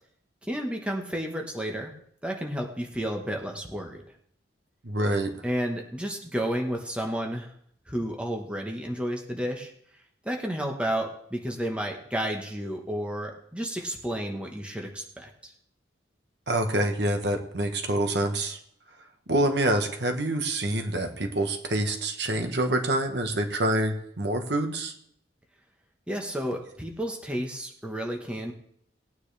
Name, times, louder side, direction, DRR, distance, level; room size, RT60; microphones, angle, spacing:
voice 1, 0.4-1.9 2.2-4.0 5.4-7.5 7.9-9.7 10.2-15.5 26.1-28.5, equal, 5° right, 1 dB, 1.2 m, -31 dB
voice 2, 4.8-5.3 16.5-18.6 19.3-24.9, right 1 dB, 65° right, 6 dB, 1.3 m, -26 dB
18.5 x 9.3 x 3.4 m, 0.67 s
head